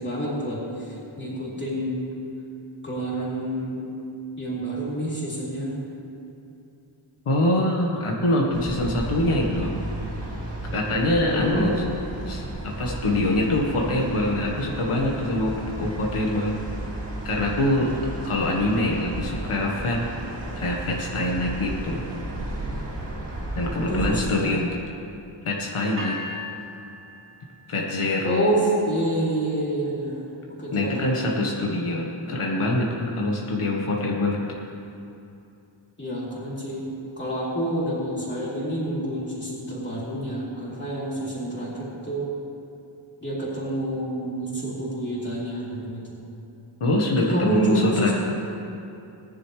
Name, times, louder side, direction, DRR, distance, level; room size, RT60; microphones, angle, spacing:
voice 1, 0.0-2.1 2.8-3.9 4.4-5.7 11.3-11.8 23.6-24.6 28.2-31.3 36.0-36.8 37.2-42.3 43.2-46.2 47.1-48.1, right 1 dB, 20° left, -7 dB, 3.4 m, -28 dB
voice 2, 7.2-9.7 10.6-11.8 12.3-16.6 17.2-17.9 18.2-20.0 20.6-22.0 23.5-24.7 25.4-26.2 27.7-28.5 30.7-34.4 46.8-48.1, left 1 dB, 80° left, -2 dB, 1.6 m, -24 dB
sound 1, 8.5-24.2, right 1 dB, 55° right, 2.5 m, -34 dB
sound 2, 26.0-28.1, left 3 dB, 25° right, 1.9 m, -38 dB
19.0 x 10.5 x 3.3 m, 2.7 s
wide cardioid pair, 165°, 49 cm